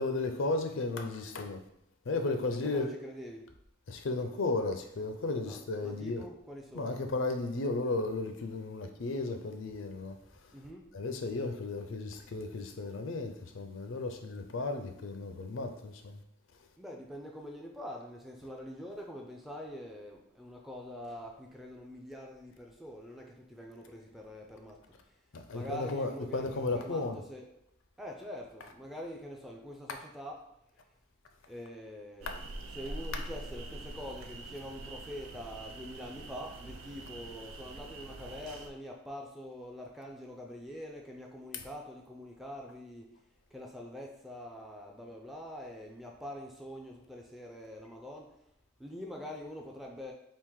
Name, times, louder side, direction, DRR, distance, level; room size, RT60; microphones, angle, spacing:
voice 1, 0.0-1.6 2.1-2.9 3.9-6.2 6.7-10.2 10.9-16.2 25.3-27.2 32.3-32.4, left 3 dB, 65° left, 0.5 m, -34 dB
voice 2, 2.6-3.5 5.4-6.9 10.5-10.9 16.8-25.2 25.5-27.5 28.0-30.9 31.5-43.2 43.5-48.5 48.8-50.1, equal, ahead, 0.4 m, -45 dB
sound 1, 32.2-38.7, right 2 dB, 70° right, 0.5 m, -44 dB
3.6 x 2.5 x 4.6 m
head